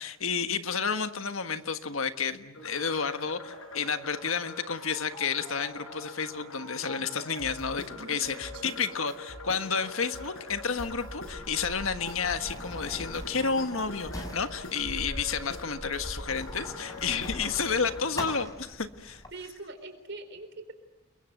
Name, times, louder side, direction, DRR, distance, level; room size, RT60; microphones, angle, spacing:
voice 1, 0.0-19.2, left 5 dB, 75° left, 9 dB, 1.5 m, -31 dB
sound 1, 2.5-18.0, left 2 dB, 90° left, 6.2 m, -43 dB
voice 2, 7.9-8.8 19.3-20.7, right 3 dB, 55° right, 8 dB, 4.0 m, -43 dB
Sliding door, 10.7-19.3, left 1 dB, 15° left, 4.9 m, -41 dB
29.5 x 23.0 x 7.9 m, 1.0 s
head